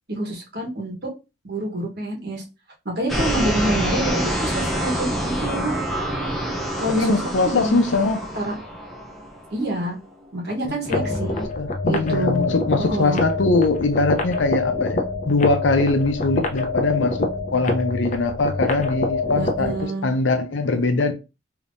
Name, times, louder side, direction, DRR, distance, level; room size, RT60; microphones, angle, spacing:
voice 1, 0.1-0.9 1.4-2.4 2.8-5.8 6.8-7.8 8.3-8.5 9.5-10.0 10.3-11.3 11.9-12.5 12.8-13.2 19.4-20.1, right 1 dB, 60° right, 1.2 m, -27 dB
sound 1, 3.1-10.3 10.9-11.5, equal, ahead, 0.6 m, -27 dB
voice 2, 7.0-8.2 10.9-11.0 11.4-21.1, left 3 dB, 80° left, 0.6 m, -22 dB
sound 2, 10.8-19.9, left 3 dB, 40° left, 0.6 m, -26 dB
3.5 x 2.8 x 2.6 m
head